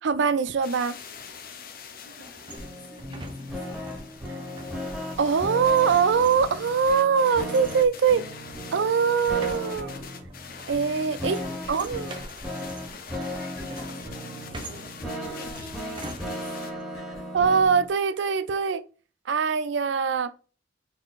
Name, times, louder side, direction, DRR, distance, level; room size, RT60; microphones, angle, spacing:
voice 1, 0.0-1.0 5.2-8.2 8.7-9.9 10.7-11.4 11.7-12.2 17.3-18.8 19.3-20.3, right 6 dB, 70° right, 0.4 m, -23 dB
sound 1, 0.6-16.7, left 5 dB, 50° left, 0.6 m, -44 dB
voice 2, 2.0-4.1 11.4-12.2 13.3-14.7 15.0-17.3, left 1 dB, 80° left, 1.7 m, -50 dB
sound 2, 2.2-16.8, right 2 dB, 25° right, 0.6 m, -46 dB
sound 3, 2.6-17.9, equal, ahead, 1.8 m, -36 dB
4.2 x 3.6 x 2.5 m
head